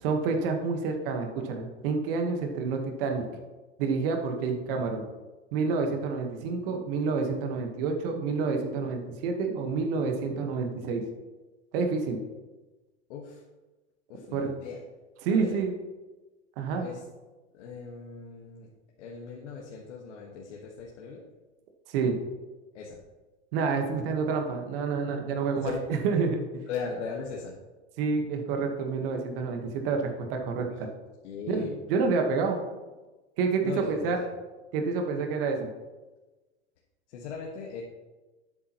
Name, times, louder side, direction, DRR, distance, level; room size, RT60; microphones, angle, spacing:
voice 1, 0.0-3.2 3.8-5.0 5.5-11.0 11.7-12.2 14.3-14.5 15.2-15.8 16.6-16.8 21.9-22.2 23.5-25.7 26.0-26.5 28.0-30.9 31.5-32.6 33.4-34.2 34.7-35.7, right 4 dB, 50° right, 3 dB, 1.4 m, -28 dB
voice 2, 13.1-13.4 14.1-14.8 15.3-15.6 16.7-17.0 17.5-18.7 19.0-21.2 22.7-23.0 25.5-25.8 26.7-27.5 31.2-31.8 33.6-34.3 37.1-37.8, left 5 dB, 75° left, -2 dB, 1.6 m, -38 dB
11.0 x 8.6 x 3.0 m, 1.2 s
supercardioid pair, 150°, 35 cm